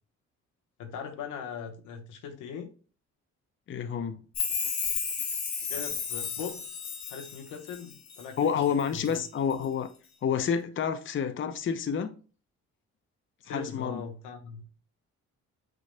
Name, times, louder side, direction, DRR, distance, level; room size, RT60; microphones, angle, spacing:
voice 1, 0.8-2.7 5.7-6.6 7.1-9.2 9.6-9.7 13.4-14.6, left 6 dB, 90° left, 1.1 m, -40 dB
voice 2, 3.7-4.2 8.4-9.9 10.2-12.1 13.5-14.0, left 7 dB, 40° left, 0.6 m, -29 dB
Chime, 4.3-8.3 8.6-9.2 9.5-9.6, left 6 dB, 70° left, 1.5 m, -33 dB
6.3 x 3.8 x 2.2 m
cardioid pair, 90°, 30 cm